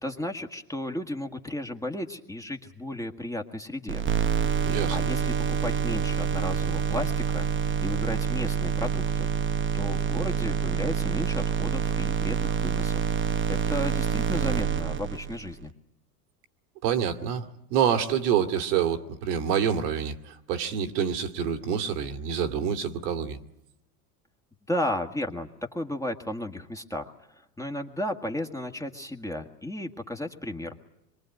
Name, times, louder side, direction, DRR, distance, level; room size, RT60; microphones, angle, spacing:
voice 1, 0.0-4.0 4.9-9.3 9.7-13.0 13.5-15.7 24.7-30.7, left 1 dB, 5° left, 1.7 m, -34 dB
sound 1, 3.9-15.5, right 7 dB, 25° right, 1.0 m, -27 dB
voice 2, 4.6-5.0 16.8-23.4, right 8 dB, 70° right, 2.4 m, -27 dB
25.5 x 23.0 x 9.2 m
hypercardioid pair, 100°, 49 cm